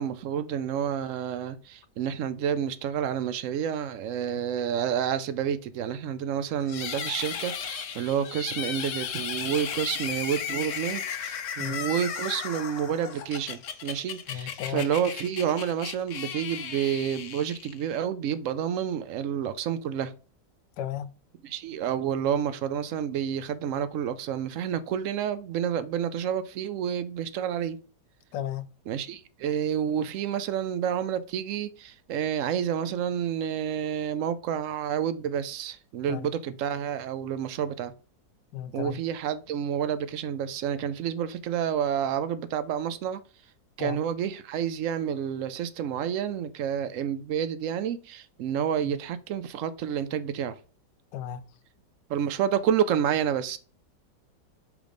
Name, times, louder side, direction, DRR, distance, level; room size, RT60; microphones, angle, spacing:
voice 1, 0.0-20.1 21.4-27.8 28.9-37.9 38.7-43.2 43.8-50.6 52.1-53.6, right 9 dB, 75° right, 0.7 m, -29 dB
sound 1, 6.7-18.0, left 7 dB, 55° left, 0.9 m, -35 dB
voice 2, 14.3-14.9 20.8-21.1 28.3-28.7 36.1-36.3 38.5-39.0 43.8-44.0 51.1-51.4, left 10 dB, 80° left, 1.3 m, -34 dB
6.2 x 3.8 x 5.1 m
omnidirectional pair, 1.9 m